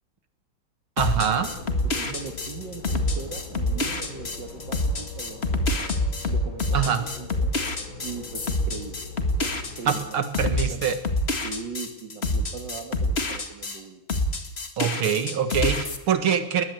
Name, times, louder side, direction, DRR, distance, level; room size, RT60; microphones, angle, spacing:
sound 1, 1.0-13.8 14.1-16.0, left 1 dB, 30° left, 2.0 m, -27 dB
voice 1, 1.0-1.5 6.7-7.0 9.9-11.0 14.8-16.6, right 7 dB, 90° right, 9 dB, 2.6 m, -24 dB
sound 2, 1.1-10.1, left 5 dB, 70° left, 3.4 m, -41 dB
voice 2, 1.8-5.7 6.2-7.5 8.0-9.0 9.3-10.8 11.4-14.0, right 5 dB, 60° right, 4 dB, 2.2 m, -40 dB
20.0 x 20.0 x 8.2 m, 0.88 s
omnidirectional pair, 2.2 m